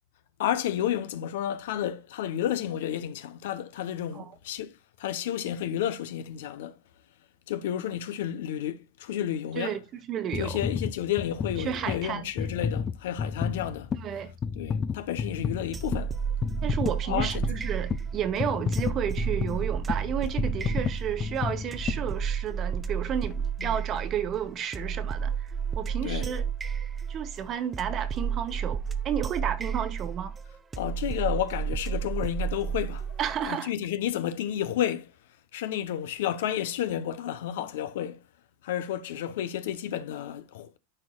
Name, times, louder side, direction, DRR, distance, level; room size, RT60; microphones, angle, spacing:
voice 1, 0.4-4.7 5.0-6.8 7.5-9.8 10.3-13.9 14.6-16.1 17.1-17.3 23.6-23.7 26.0-26.3 30.8-33.1 33.4-35.1 35.5-38.2 38.6-40.7, left 11 dB, 75° left, 0.8 m, -31 dB
voice 2, 10.1-10.6 11.6-12.3 13.9-14.3 16.6-25.5 25.8-26.5 27.1-30.3 33.2-33.7, right 9 dB, 30° right, 1.1 m, -32 dB
sound 1, 10.3-22.7 23.3-23.4, left 6 dB, 25° left, 0.4 m, -32 dB
sound 2, 15.7-33.5, right 7 dB, 15° right, 0.6 m, -32 dB
13.5 x 4.5 x 2.3 m
supercardioid pair, 140°, 0 cm